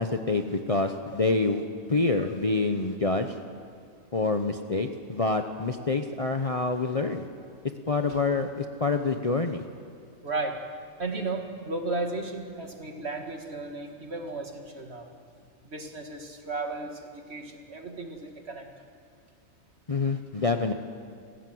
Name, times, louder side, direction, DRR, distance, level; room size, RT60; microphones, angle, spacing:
voice 1, 0.0-1.6 1.9-3.4 4.1-7.3 7.9-9.6 19.9-20.7, left 3 dB, 30° left, 6 dB, 0.8 m, -27 dB
voice 2, 10.2-10.6 11.0-15.1 15.6-18.7, right 3 dB, 50° right, 3 dB, 2.3 m, -34 dB
28.5 x 15.5 x 7.8 m, 2.2 s
omnidirectional pair, 1.4 m